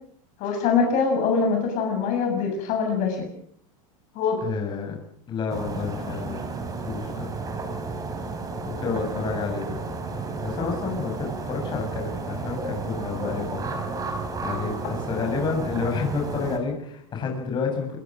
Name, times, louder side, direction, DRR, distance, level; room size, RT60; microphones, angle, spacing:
voice 1, 0.4-3.2 4.2-4.4, left 5 dB, 45° left, 3 dB, 7.0 m, -23 dB
voice 2, 4.4-5.0 5.3-6.5 6.8-7.3 8.6-9.7 10.1-13.6 14.1-17.9, left 5 dB, 25° left, 2 dB, 7.7 m, -30 dB
sound 1, 5.5-16.6, right 4 dB, 20° right, 4.4 m, -32 dB
26.0 x 21.5 x 6.4 m, 0.63 s
supercardioid pair, 150°, 18 cm